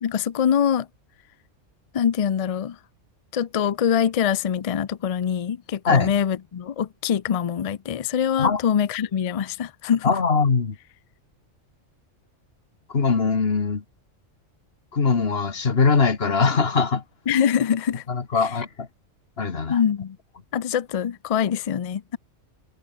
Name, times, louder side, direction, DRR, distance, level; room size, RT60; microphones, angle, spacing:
voice 1, 0.0-0.9 1.9-2.8 3.3-10.2 17.3-18.0 18.3-18.6 19.7-20.2 20.5-22.2, left 8 dB, 70° left, 0.3 m, -24 dB
voice 2, 10.0-10.8 12.9-13.8 14.9-17.0 18.1-18.9 19.4-19.8, left 5 dB, 50° left, 1.9 m, -21 dB
omnidirectional pair, 1.3 m